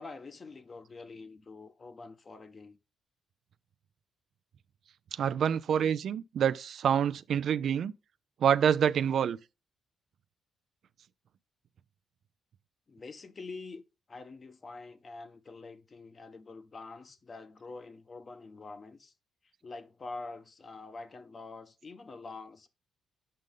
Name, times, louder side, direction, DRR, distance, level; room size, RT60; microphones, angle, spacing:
voice 1, 0.0-2.8 12.9-13.8 14.1-19.1 19.6-22.7, left 3 dB, 35° left, 1.0 m, -46 dB
voice 2, 5.1-7.9 8.4-9.4, right 8 dB, 65° right, 0.4 m, -27 dB
7.7 x 5.3 x 3.7 m
cardioid pair, 90°, 0 cm